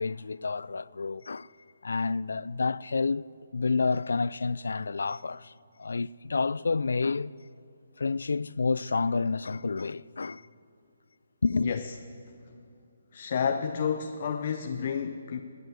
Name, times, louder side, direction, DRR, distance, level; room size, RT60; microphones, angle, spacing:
voice 1, 0.0-1.5 1.8-3.2 3.5-5.5 5.8-7.3 8.0-10.5 11.4-11.7, left 4 dB, 80° left, 0.3 m, -29 dB
voice 2, 11.6-11.9 13.1-15.4, left 7 dB, 45° left, 0.7 m, -30 dB
19.0 x 9.3 x 7.8 m
hypercardioid pair, 155°, 0 cm